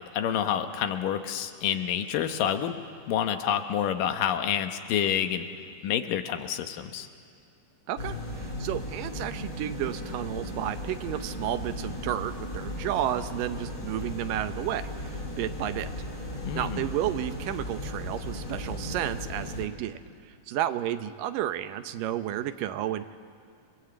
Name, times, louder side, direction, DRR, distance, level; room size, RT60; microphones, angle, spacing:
voice 1, 0.1-2.8 3.1-5.5 5.8-7.1 16.4-16.8, left 9 dB, 90° left, 7 dB, 2.8 m, -28 dB
voice 2, 7.9-15.9 16.5-20.0 20.2-23.2, right 12 dB, 85° right, 10 dB, 2.5 m, -32 dB
sound 1, 8.0-19.7, left 1 dB, 30° left, 3.3 m, -36 dB
29.0 x 23.0 x 8.1 m, 2.2 s
omnidirectional pair, 3.8 m